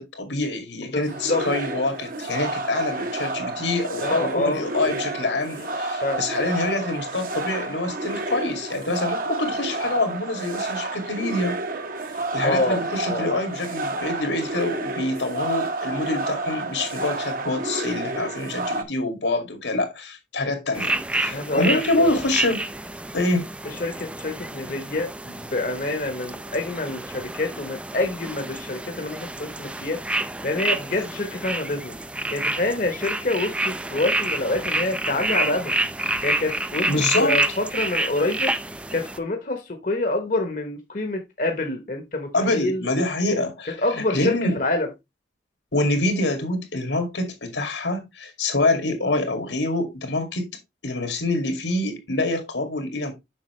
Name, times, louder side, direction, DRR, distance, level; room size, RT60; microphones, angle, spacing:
voice 1, 0.0-11.6 12.3-22.6 23.1-23.5 36.9-37.4 42.3-43.8 44.1-44.6 45.7-50.5 50.8-53.1, left 2 dB, 85° left, 2.4 m, -26 dB
voice 2, 0.8-1.4 4.0-5.0 5.6-5.7 6.0-6.2 12.4-12.8 13.1-13.3 21.3-22.1 23.6-30.0 30.4-31.9 32.3-35.7 36.2-36.9 37.2-38.5 38.9-42.8 43.8-44.9, left 2 dB, 45° left, 1.0 m, -27 dB
sound 1, 1.1-18.8, right 2 dB, 50° right, 0.9 m, -30 dB
sound 2, 20.7-39.2, right 2 dB, 5° right, 0.3 m, -28 dB
7.3 x 5.9 x 3.1 m
head